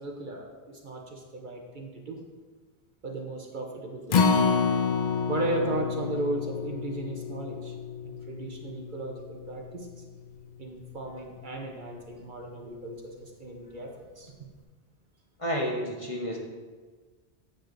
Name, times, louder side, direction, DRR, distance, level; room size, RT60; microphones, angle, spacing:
voice 1, 0.0-2.2 3.0-4.6 5.3-7.7 8.0-9.9 10.6-14.3, right 2 dB, 50° right, 1 dB, 0.8 m, -36 dB
Acoustic guitar, 4.1-10.4 10.8-10.9 11.3-11.4, left 5 dB, 60° left, 0.5 m, -29 dB
voice 2, 15.4-16.4, equal, 30° left, -1 dB, 0.9 m, -30 dB
9.0 x 7.6 x 2.5 m, 1.4 s
omnidirectional pair, 1.1 m